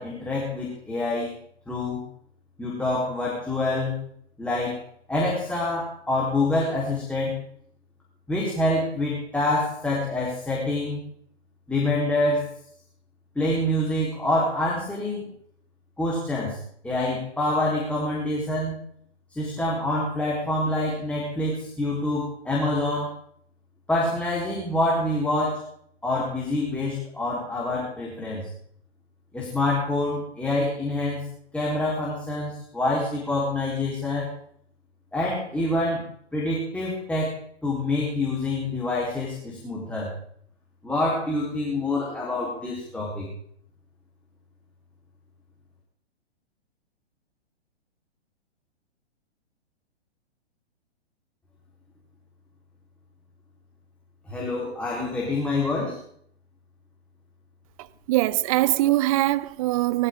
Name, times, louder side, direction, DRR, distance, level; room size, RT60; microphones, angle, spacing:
voice 1, 0.0-1.4 1.7-2.0 2.6-4.0 4.4-4.8 5.1-7.4 8.3-11.1 11.7-12.5 13.4-15.3 16.0-16.6 16.8-18.8 19.3-23.1 23.9-25.7 26.0-28.5 29.3-31.3 31.5-34.3 35.1-36.0 36.3-40.1 40.8-43.3 54.3-56.0, left 2 dB, 5° left, 3.9 m, -26 dB
voice 2, 58.1-60.1, right 16 dB, 35° right, 0.7 m, -22 dB
20.0 x 14.5 x 3.7 m
figure-of-eight pair, 120°, 33 cm